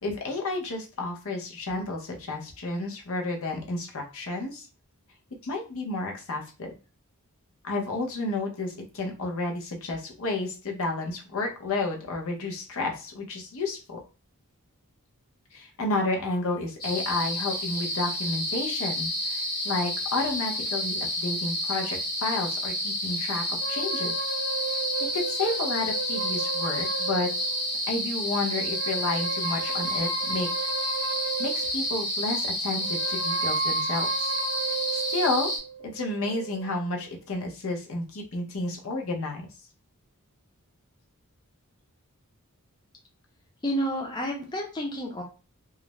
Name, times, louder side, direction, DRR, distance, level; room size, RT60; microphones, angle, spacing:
voice 1, 0.0-4.7 5.4-6.7 7.6-14.0 15.5-19.4 19.6-23.4 23.7-24.1 24.7-24.8 25.1-27.3 27.9-30.5 31.4-34.3 34.9-35.5 35.8-39.5, left 2 dB, 65° left, 1 dB, 0.7 m, -31 dB
sound 1, 16.8-35.6, left 1 dB, 45° left, 1.1 m, -30 dB
sound 2, 23.6-27.8 28.5-32.0 32.8-37.2, right 5 dB, 65° right, 0.6 m, -34 dB
voice 2, 43.6-45.2, equal, 20° left, 0 dB, 0.4 m, -30 dB
2.4 x 2.0 x 3.0 m, 0.32 s
head